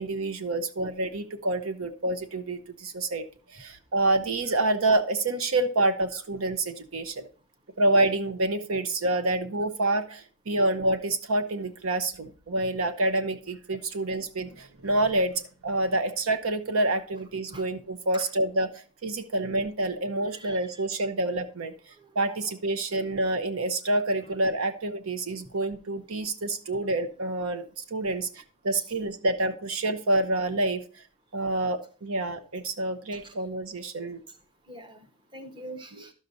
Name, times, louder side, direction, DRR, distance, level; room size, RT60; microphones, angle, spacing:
voice 1, 0.0-3.2 3.5-7.3 7.8-18.7 19.0-21.7 22.1-31.0 31.3-34.2 36.0-36.1, right 2 dB, 70° right, 10 dB, 0.8 m, -27 dB
voice 2, 20.3-20.8 22.0-22.4 24.3-24.4 28.7-28.8 33.1-33.3 34.7-35.0 35.3-36.1, right 1 dB, 20° right, 7 dB, 0.9 m, -44 dB
12.0 x 6.5 x 2.7 m, 0.40 s
head